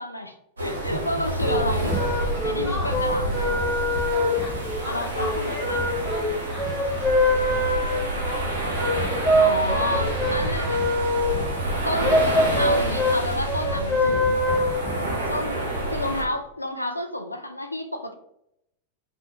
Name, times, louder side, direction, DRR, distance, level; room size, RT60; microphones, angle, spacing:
voice 1, 0.0-1.9 2.4-3.6 4.8-5.8 9.3-10.8 11.8-12.2 12.6-14.4 15.3-15.6 15.9-18.1, left 1 dB, 85° left, 6 dB, 0.3 m, -30 dB
sound 1, 0.6-16.2, right 1 dB, 75° right, 0.7 m, -29 dB
sound 2, 1.3-15.2, left 1 dB, 15° left, 0.8 m, -24 dB
voice 2, 1.8-2.1 2.6-2.9 4.1-5.7 6.0-7.4 7.8-10.7, left 1 dB, 20° right, -3 dB, 1.1 m, -37 dB
3.5 x 2.1 x 2.8 m, 0.79 s
figure-of-eight pair, 90°, 0 cm